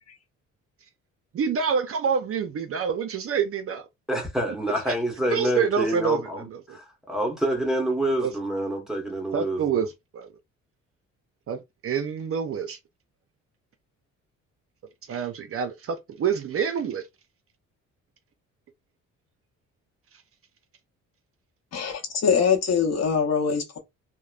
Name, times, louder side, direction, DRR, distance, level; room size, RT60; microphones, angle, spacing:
voice 1, 1.3-3.9 4.9-5.0 5.3-6.8 8.2-8.3 9.3-10.3 11.5-12.8 15.1-17.0, right 7 dB, 50° right, 0.5 m, -27 dB
voice 2, 4.1-9.8, right 1 dB, ahead, 1.2 m, -27 dB
voice 3, 21.7-23.8, left 6 dB, 55° left, 0.8 m, -23 dB
3.0 x 2.1 x 2.4 m
cardioid pair, 90°, 30 cm